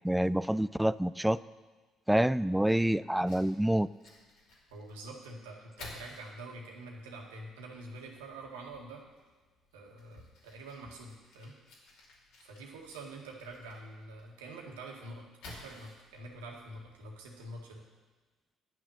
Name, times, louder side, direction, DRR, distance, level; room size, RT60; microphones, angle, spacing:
voice 1, 0.0-1.4 2.1-3.9, right 1 dB, 5° right, 17 dB, 0.4 m, -27 dB
Fire, 3.1-17.7, left 2 dB, 70° left, 2.8 m, -56 dB
voice 2, 4.7-9.0 9.7-11.6 12.4-17.8, right 2 dB, 80° right, 0 dB, 1.8 m, -46 dB
10.5 x 6.4 x 8.7 m, 1.3 s
hypercardioid pair, 50°, 0 cm